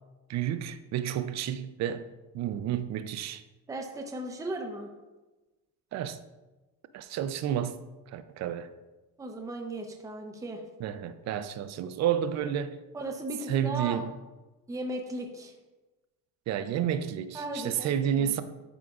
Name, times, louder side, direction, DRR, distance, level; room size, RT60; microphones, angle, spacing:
voice 1, 0.3-2.1 2.3-3.4 5.9-6.2 6.9-7.8 8.1-8.7 10.8-12.8 13.5-14.1 16.5-18.4, right 10 dB, 50° right, 0.5 m, -30 dB
voice 2, 3.7-4.9 9.2-10.6 12.9-14.0 14.7-15.5 17.3-17.9 18.2-18.4, right 1 dB, 10° right, 0.6 m, -36 dB
11.5 x 4.9 x 2.4 m
cardioid pair, 155°, 36 cm